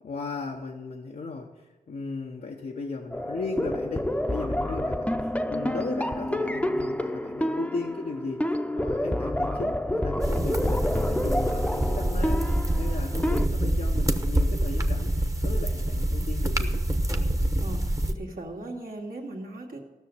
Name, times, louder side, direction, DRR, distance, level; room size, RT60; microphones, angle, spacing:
voice 1, 0.0-15.1 15.4-17.0, left 3 dB, 75° left, -2 dB, 1.1 m, -36 dB
sound 1, 3.1-13.5, left 1 dB, 10° left, 0.8 m, -28 dB
sound 2, 10.2-18.1, right 1 dB, 20° right, 1.1 m, -26 dB
voice 2, 17.6-19.8, right 2 dB, 70° right, 0 dB, 2.2 m, -38 dB
15.0 x 6.3 x 7.8 m, 1.2 s
wide cardioid pair, 65°, 15 cm